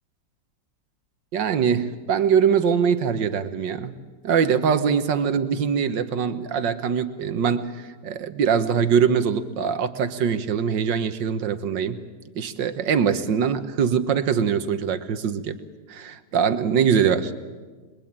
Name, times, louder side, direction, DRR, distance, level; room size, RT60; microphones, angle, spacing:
voice 1, 1.3-4.0 4.2-12.0 12.4-15.6 15.9-17.3, right 7 dB, 80° right, 11 dB, 1.9 m, -22 dB
26.0 x 22.0 x 8.9 m, 1.4 s
omnidirectional pair, 1.9 m